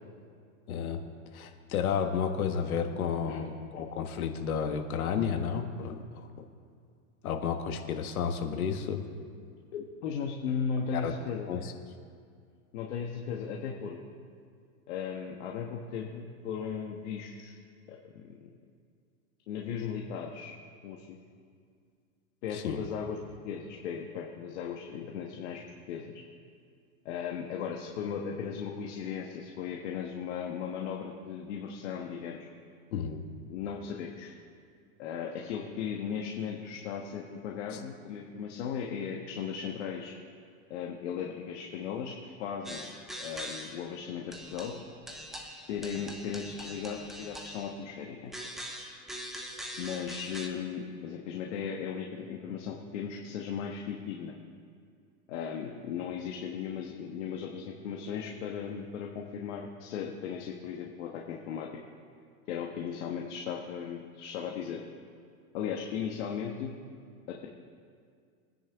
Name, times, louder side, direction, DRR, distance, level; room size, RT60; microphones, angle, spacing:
voice 1, 0.7-1.0 1.3-6.4 7.2-9.0 10.9-11.1 11.5-11.7 22.5-22.8 32.9-33.2 37.7-37.8, left 7 dB, 90° left, 5 dB, 1.6 m, -32 dB
voice 2, 9.7-11.5 12.7-14.0 14.9-17.6 17.9-18.5 19.5-20.5 20.8-21.2 22.4-23.2 23.4-25.6 25.9-26.0 27.0-32.5 33.5-34.3 35.0-40.1 40.7-42.9 43.2-44.7 45.7-48.3 49.8-54.3 55.3-61.7 62.5-64.8 65.5-66.7 67.3-67.5, left 7 dB, 55° left, 0 dB, 1.3 m, -37 dB
sound 1, 42.7-43.9 44.3-47.8 48.3-50.5, equal, ahead, 0.5 m, -43 dB
24.0 x 10.0 x 3.5 m, 2.2 s
supercardioid pair, 155°, 42 cm